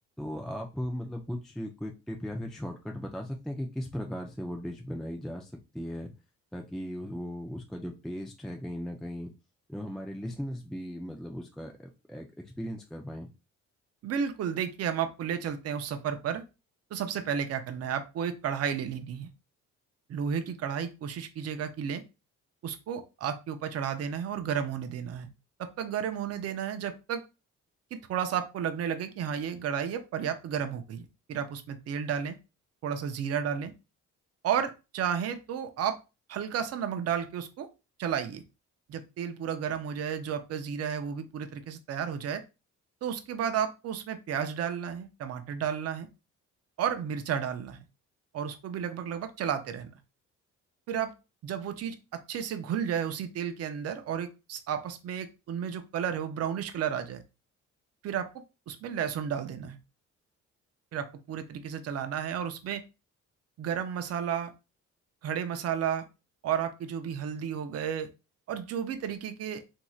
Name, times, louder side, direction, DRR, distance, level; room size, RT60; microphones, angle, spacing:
voice 1, 0.2-6.1 6.5-9.3 9.7-13.3, equal, ahead, 2 dB, 0.4 m, -37 dB
voice 2, 14.0-16.4 16.9-19.3 20.1-22.0 22.6-25.3 25.6-27.2 27.9-32.4 32.8-33.7 34.4-36.0 36.3-37.7 38.0-38.4 38.9-42.4 43.0-46.1 46.8-47.8 48.3-49.9 50.9-51.1 51.4-57.2 58.0-58.3 58.7-59.8 60.9-62.8 63.6-64.5 65.2-66.1 66.4-68.1 68.5-69.6, right 8 dB, 55° right, 8 dB, 0.5 m, -32 dB
3.0 x 2.6 x 2.3 m, 0.28 s
cardioid pair, 90°, 30 cm